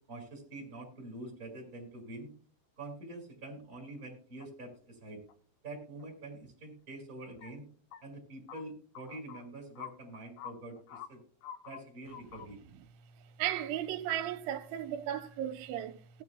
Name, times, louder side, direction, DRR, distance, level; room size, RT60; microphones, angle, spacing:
voice 1, 0.1-2.3 2.8-5.2 5.6-7.6 8.0-11.2 11.6-12.6, right 2 dB, 15° right, 5.6 m, -46 dB
sound 1, 4.4-4.5 5.3-5.4 6.0-6.1 7.3-7.5 7.9-8.0 8.5-8.6 9.0-9.5 9.8-9.9 10.1-11.1 11.4-11.8 12.1-12.5, left 9 dB, 90° left, 4.0 m, -46 dB
voice 2, 13.4-16.2, right 11 dB, 85° right, 3.2 m, -35 dB
19.0 x 10.5 x 2.3 m
omnidirectional pair, 5.4 m